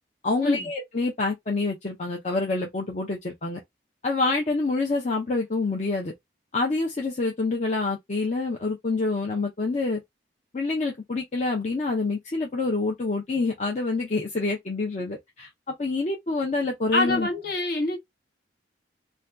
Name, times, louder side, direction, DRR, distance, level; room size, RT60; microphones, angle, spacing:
voice 1, 0.2-3.6 4.0-6.1 6.5-10.0 10.5-17.3, left 3 dB, 40° left, 0.5 m, -27 dB
voice 2, 16.9-18.0, left 2 dB, 55° left, 1.2 m, -25 dB
2.6 x 2.2 x 3.4 m
head